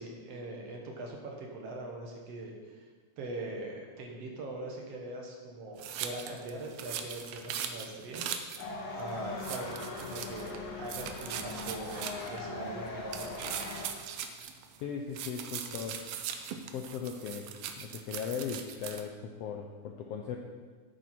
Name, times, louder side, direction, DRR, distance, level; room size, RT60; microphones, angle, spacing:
voice 1, 0.0-2.9 3.2-8.2 8.9-13.7, right 2 dB, 60° right, 0 dB, 2.1 m, -41 dB
sound 1, 5.8-8.7 9.0-9.1 9.4-10.6 10.9-12.4 13.1-14.8 15.1-19.0, right 8 dB, 80° right, 1.4 m, -40 dB
sound 2, 8.6-13.9, left 3 dB, 65° left, 1.4 m, -41 dB
voice 2, 14.8-16.0 16.7-17.4 17.8-20.4, left 7 dB, 80° left, 3 dB, 1.4 m, -38 dB
9.3 x 8.2 x 4.4 m, 1.5 s
omnidirectional pair, 3.5 m